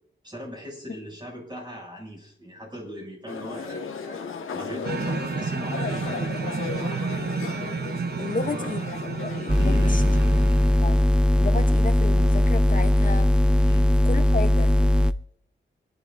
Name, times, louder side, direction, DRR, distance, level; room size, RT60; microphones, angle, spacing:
voice 1, 0.2-7.3 8.1-8.7 9.6-10.3 13.6-13.9, equal, 20° right, -2 dB, 7.1 m, -39 dB
sound 1, 3.3-9.5, left 5 dB, 85° left, 1.5 m, -35 dB
sound 2, 4.8-11.0, right 5 dB, 50° right, 0.9 m, -31 dB
voice 2, 8.2-10.0 10.8-11.0 11.4-13.3 13.6-13.8 14.0-14.7, left 4 dB, 40° left, 8 dB, 0.8 m, -32 dB
sound 3, 9.5-15.1, left 1 dB, 5° right, 0.6 m, -19 dB
27.5 x 11.0 x 2.6 m, 0.65 s
cardioid pair, 65°, 21 cm